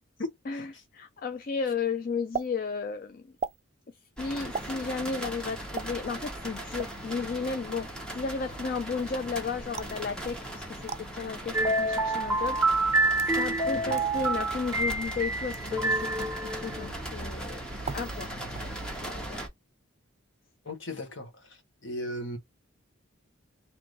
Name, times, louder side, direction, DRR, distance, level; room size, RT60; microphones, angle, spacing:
voice 1, 0.4-3.3 3.9-12.9 13.3-17.6 17.9-18.4 18.9-19.5, left 5 dB, 40° left, 0.4 m, -34 dB
sound 1, 2.3-2.5 3.4-3.6 4.5-4.7 5.7-5.9 6.8-7.0 9.7-10.0 10.9-11.0 12.0-12.1 12.9-13.4 14.0-14.1 14.8-15.1 15.5-15.6 16.2-16.4 17.8-18.3 18.5-19.0, right 6 dB, 30° right, 0.3 m, -37 dB
sound 2, 4.2-19.5, right 1 dB, 5° left, 0.9 m, -39 dB
sound 3, 11.5-16.9, right 2 dB, 10° right, 1.3 m, -27 dB
voice 2, 20.7-21.3 21.8-22.4, left 1 dB, 60° left, 1.4 m, -36 dB
3.2 x 3.0 x 3.8 m
head